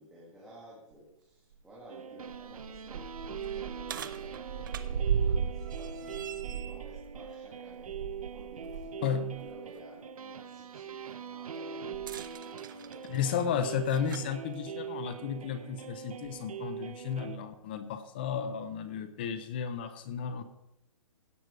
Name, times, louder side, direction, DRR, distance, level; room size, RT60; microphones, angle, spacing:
voice 1, 0.0-6.2 6.5-8.0 8.3-13.3, equal, 5° right, -8 dB, 2.0 m, -53 dB
sound 1, 0.9-1.0 1.5-1.6 2.2-8.9 9.3-9.5 11.9-14.3 15.3-15.4 16.2-16.3, right 7 dB, 35° right, 0.6 m, -36 dB
sound 2, 1.9-17.4, right 7 dB, 80° right, 0.9 m, -42 dB
voice 2, 9.0-9.3 13.1-20.4, left 7 dB, 15° left, 11 dB, 0.5 m, -33 dB
16.5 x 6.1 x 5.0 m, 0.89 s
hypercardioid pair, 175°, 18 cm